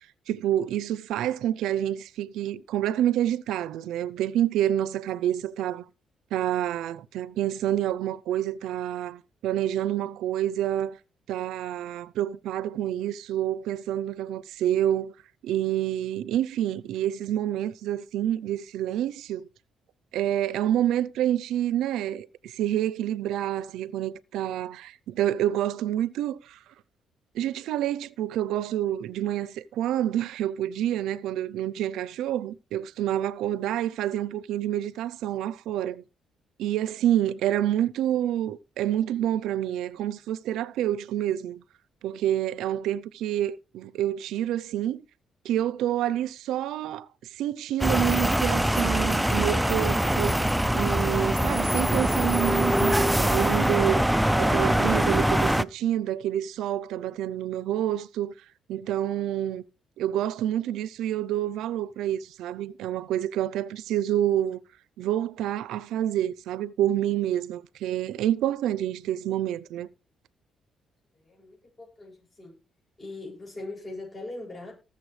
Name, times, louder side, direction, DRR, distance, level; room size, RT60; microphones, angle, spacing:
voice 1, 0.3-5.8 6.3-11.0 11.3-15.1 15.4-19.5 20.1-26.6 27.3-36.0 36.6-41.6 42.0-45.0 45.4-47.1 47.3-50.4 50.7-54.0 54.4-58.3 58.7-59.6 60.0-64.6 65.0-69.9, right 11 dB, 85° right, 0.6 m, -28 dB
sound 1, 47.8-55.6, equal, 5° right, 0.5 m, -23 dB
voice 2, 71.2-72.6 73.0-74.7, left 2 dB, 30° left, 8.0 m, -40 dB
19.0 x 6.9 x 3.3 m
cardioid pair, 90°, 0 cm